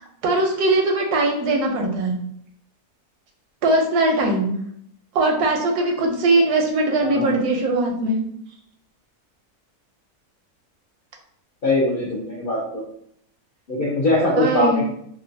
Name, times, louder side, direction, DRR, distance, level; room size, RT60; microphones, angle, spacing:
voice 1, 0.2-2.1 3.6-4.5 5.1-8.2 14.3-14.9, right 2 dB, 85° right, 2 dB, 1.1 m, -20 dB
voice 2, 7.0-7.3 11.6-12.8 13.7-14.9, left 2 dB, 85° left, -4 dB, 0.4 m, -22 dB
2.9 x 2.3 x 2.5 m, 0.69 s
omnidirectional pair, 1.6 m